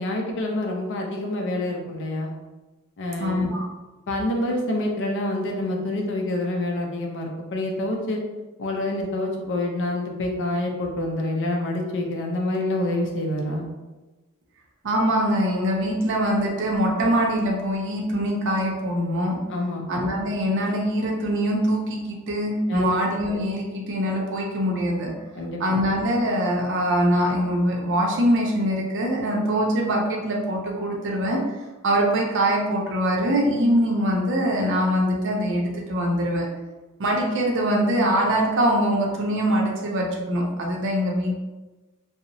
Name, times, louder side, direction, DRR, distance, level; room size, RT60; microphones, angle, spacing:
voice 1, 0.0-2.3 3.0-3.5 4.1-8.2 8.6-13.6 19.5-19.9 22.7-22.9 23.3-23.4 25.4-25.8, left 1 dB, 55° left, 1 dB, 0.4 m, -27 dB
voice 2, 3.2-3.6 14.8-19.4 19.9-25.1 25.6-31.4 31.8-36.5 37.0-41.3, equal, 55° right, -1 dB, 0.5 m, -23 dB
2.8 x 2.0 x 2.6 m, 1.2 s
head